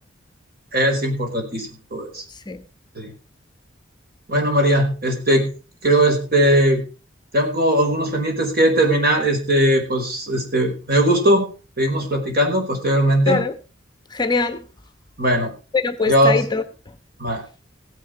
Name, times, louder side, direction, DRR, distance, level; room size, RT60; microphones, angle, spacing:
voice 1, 0.7-2.2 3.0-3.1 4.3-5.5 5.8-6.8 7.3-11.5 11.8-13.5 15.2-15.5 16.1-16.4 17.2-17.4, right 1 dB, 55° right, 5.1 m, -19 dB
voice 2, 2.3-2.7 13.3-13.5 14.1-14.7 15.7-17.0, left 4 dB, 20° left, 1.0 m, -23 dB
16.0 x 10.5 x 4.7 m
head